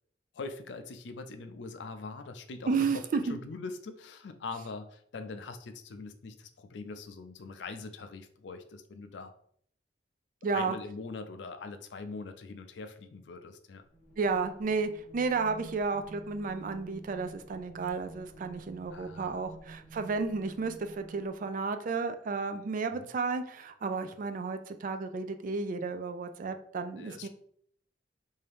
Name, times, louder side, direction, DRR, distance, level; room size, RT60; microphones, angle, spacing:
voice 1, 0.3-3.0 3.3-9.3 10.5-13.8 18.9-19.4 22.9-23.1 27.0-27.3, left 4 dB, 80° left, 9 dB, 0.5 m, -42 dB
voice 2, 2.7-3.4 10.4-10.8 14.2-27.3, right 4 dB, 50° right, 9 dB, 0.3 m, -32 dB
sound 1, 13.8-21.5, right 3 dB, 40° left, 0.8 m, -50 dB
3.4 x 2.7 x 3.4 m, 0.62 s
head